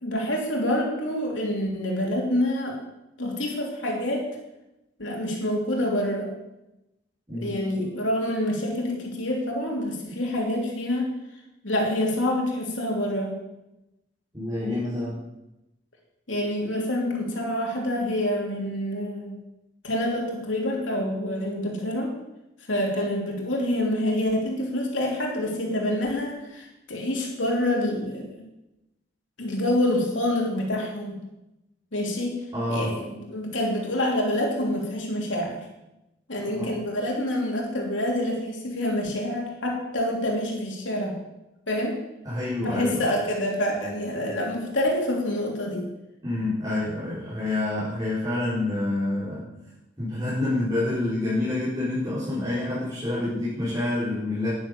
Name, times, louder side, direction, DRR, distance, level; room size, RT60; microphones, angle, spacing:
voice 1, 0.0-2.8 3.2-4.3 5.0-6.3 7.3-11.1 11.6-13.3 16.3-19.3 19.8-22.2 22.7-28.4 29.4-31.1 31.9-32.4 32.7-35.6 36.3-41.2 41.7-42.0 42.6-45.9, left 1 dB, 85° left, -1 dB, 3.2 m, -27 dB
voice 2, 7.3-7.6 14.3-15.2 32.5-33.0 36.5-36.8 42.2-43.1 46.2-49.5 50.0-54.5, left 2 dB, 20° right, -11 dB, 4.7 m, -27 dB
10.5 x 10.5 x 6.8 m, 0.93 s
head